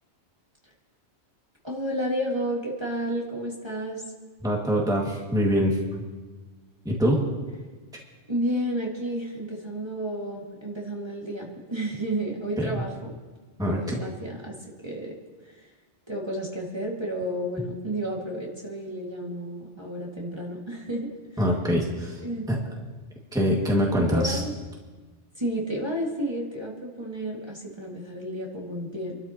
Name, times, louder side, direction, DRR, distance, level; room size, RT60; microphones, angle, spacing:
voice 1, 1.6-4.0 8.3-13.1 13.7-15.2 15.5-15.7 16.1-21.5 22.2-22.5 24.0-24.5 25.3-29.2, right 1 dB, 20° right, -4 dB, 2.1 m, -31 dB
voice 2, 4.4-5.8 6.9-7.3 12.6-12.7 13.6-14.0 21.4-22.2 22.5-22.6 23.3-24.4, equal, 5° right, -3 dB, 1.9 m, -24 dB
27.5 x 12.5 x 3.0 m, 1.3 s
omnidirectional pair, 1.2 m